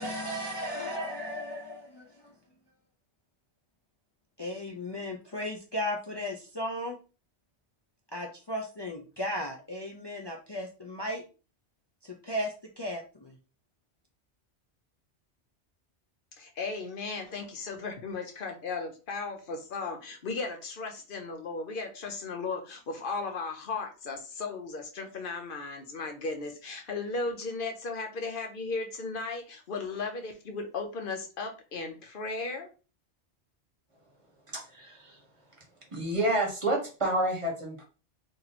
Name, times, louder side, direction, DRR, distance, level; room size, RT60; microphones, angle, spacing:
voice 1, 0.0-2.3 4.4-7.0 8.1-11.2 12.0-13.4, left 1 dB, 40° left, 0.3 m, -35 dB
voice 2, 16.4-32.7, left 3 dB, 55° left, 0.8 m, -36 dB
voice 3, 34.5-35.2 35.9-37.8, right 1 dB, 30° right, 1.2 m, -29 dB
2.9 x 2.6 x 4.0 m
omnidirectional pair, 1.1 m